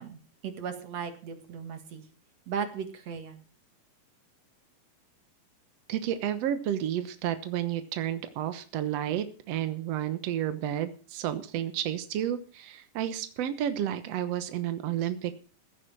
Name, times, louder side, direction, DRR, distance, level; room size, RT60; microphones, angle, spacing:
voice 1, 0.0-2.0 2.5-3.4, right 7 dB, 50° right, 7 dB, 2.7 m, -37 dB
voice 2, 5.9-15.3, right 11 dB, 80° right, 11 dB, 1.4 m, -31 dB
16.0 x 9.9 x 6.2 m, 0.39 s
omnidirectional pair, 4.5 m